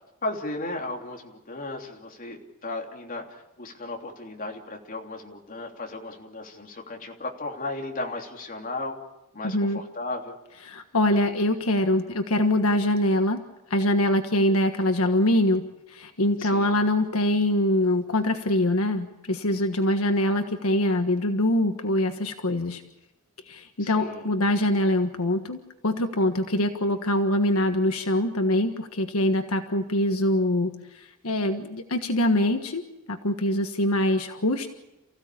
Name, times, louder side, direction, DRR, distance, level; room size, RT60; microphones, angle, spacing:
voice 1, 0.2-9.0 9.3-10.4 16.4-16.8 23.8-24.3, left 2 dB, 40° left, 1 dB, 3.2 m, -35 dB
voice 2, 9.4-9.8 10.7-13.4 13.7-22.8 23.5-32.8 33.1-34.7, left 1 dB, 80° left, 6 dB, 1.5 m, -24 dB
29.0 x 16.0 x 8.5 m, 0.94 s
head